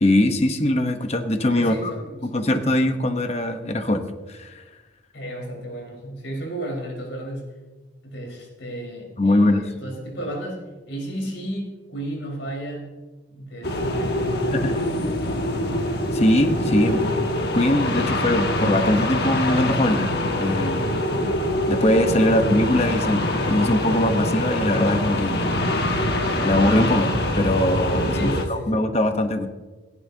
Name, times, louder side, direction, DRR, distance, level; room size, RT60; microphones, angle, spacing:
voice 1, 0.0-1.9 2.2-4.0 4.3-4.6 9.2-9.7 14.5-14.8 16.1-17.0 17.5-20.1 20.4-20.9 21.7-25.5 26.4-29.5, left 1 dB, 35° left, 6 dB, 0.9 m, -21 dB
voice 2, 1.5-2.3 5.1-7.6 8.0-12.9 13.3-14.5 16.8-17.1 17.5-17.8 22.3-22.4 28.1-28.9, right 1 dB, 80° left, 0 dB, 4.5 m, -33 dB
sound 1, 13.6-28.5, left 1 dB, 55° left, 1.4 m, -24 dB
27.5 x 11.0 x 2.8 m, 1.3 s
head